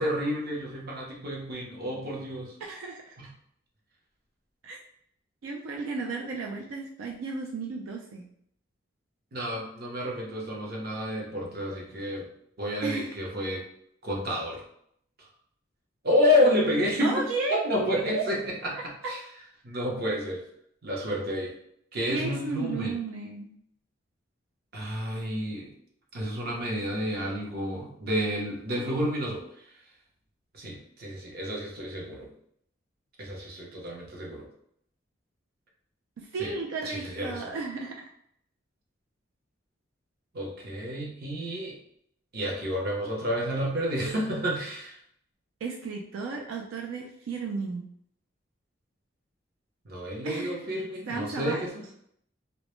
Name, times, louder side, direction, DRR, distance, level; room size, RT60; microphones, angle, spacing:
voice 1, 0.0-2.5 3.2-3.3 9.3-12.3 12.6-13.6 14.0-14.6 15.2-15.3 16.0-17.2 17.5-18.8 19.1-19.2 19.6-20.4 20.8-21.5 21.9-22.9 24.7-25.7 26.1-29.4 30.5-32.3 33.2-34.5 36.4-36.5 36.8-37.5 40.3-41.8 42.3-45.0 49.8-51.7, left 1 dB, 50° right, -2 dB, 0.7 m, -30 dB
voice 2, 2.6-3.1 4.6-4.8 5.4-8.3 12.8-13.2 17.0-19.1 22.1-23.5 36.2-38.1 45.6-47.8 50.2-50.6 51.1-51.6, right 4 dB, 85° right, 1 dB, 0.3 m, -34 dB
2.1 x 2.0 x 3.0 m, 0.69 s
head